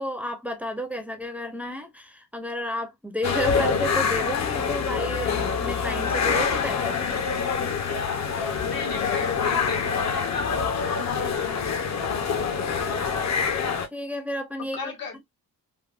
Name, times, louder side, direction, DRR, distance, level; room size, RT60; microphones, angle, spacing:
voice 1, 0.0-7.2 12.6-12.9 13.9-14.8, equal, 5° right, 0.5 m, -32 dB
sound 1, 3.2-13.9, left 6 dB, 50° left, 0.6 m, -26 dB
voice 2, 8.6-11.4 14.7-15.2, left 5 dB, 85° left, 1.2 m, -35 dB
3.4 x 2.1 x 2.3 m
wide cardioid pair, 125°, 35 cm